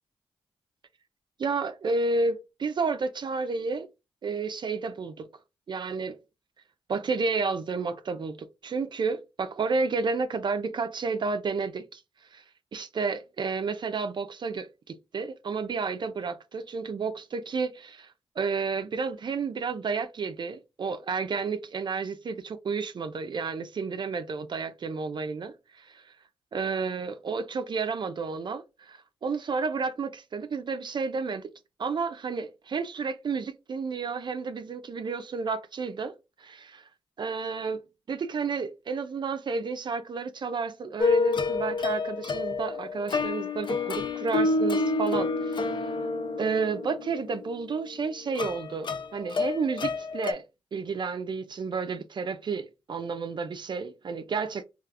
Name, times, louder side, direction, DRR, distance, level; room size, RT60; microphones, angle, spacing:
voice 1, 1.4-3.9 4.2-5.3 5.7-6.2 6.9-12.0 12.3-12.4 12.7-25.5 26.5-31.5 31.8-36.9 37.2-37.8 38.1-45.9 46.4-50.4 50.7-54.6, right 4 dB, 50° right, 0.4 m, -31 dB
sound 1, 41.0-50.3, left 3 dB, 55° left, 0.5 m, -28 dB
3.2 x 2.4 x 2.3 m
supercardioid pair, 50°, 10 cm